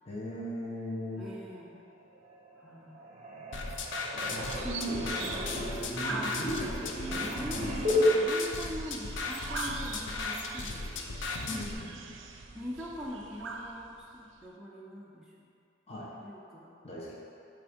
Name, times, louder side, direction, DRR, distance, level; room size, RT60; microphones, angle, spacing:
voice 1, 0.1-1.3 4.0-8.0 11.5-12.2 15.9-16.1 16.8-17.1, equal, 35° left, -6 dB, 1.1 m, -38 dB
voice 2, 1.2-1.8 2.6-3.0 6.1-6.3 7.2-7.8 8.1-10.9 11.5-11.6 12.5-15.5 16.2-16.7, equal, ahead, -6 dB, 0.6 m, -42 dB
sound 1, 2.1-2.7 2.9-8.1, left 1 dB, 35° right, 0.9 m, -33 dB
sound 2, 3.5-11.7, left 3 dB, 75° left, 0.6 m, -36 dB
sound 3, 4.1-14.5, right 4 dB, 80° right, 0.5 m, -43 dB
8.2 x 3.5 x 5.2 m, 2.6 s
head